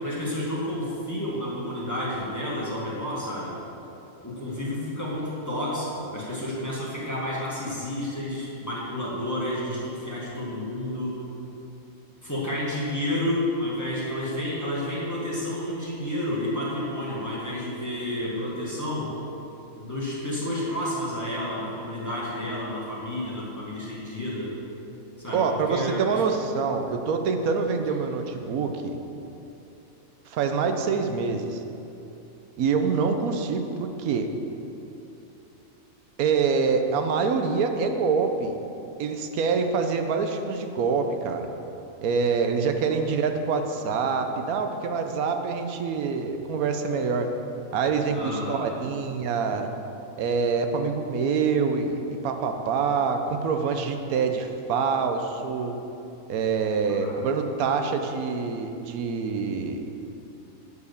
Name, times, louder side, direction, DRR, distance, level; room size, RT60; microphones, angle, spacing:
voice 1, 0.0-3.5 4.2-11.2 12.2-19.1 19.7-24.6 25.2-26.2 42.8-43.0 48.1-48.8 56.9-57.2, left 1 dB, 15° left, -7 dB, 1.5 m, -30 dB
voice 2, 25.3-29.0 30.3-31.6 32.6-34.3 36.2-38.5 39.0-41.5 42.0-47.3 47.7-49.7 50.2-55.8 56.3-59.8, right 5 dB, 90° right, 6 dB, 1.1 m, -25 dB
8.2 x 4.8 x 6.5 m, 2.9 s
omnidirectional pair, 1.5 m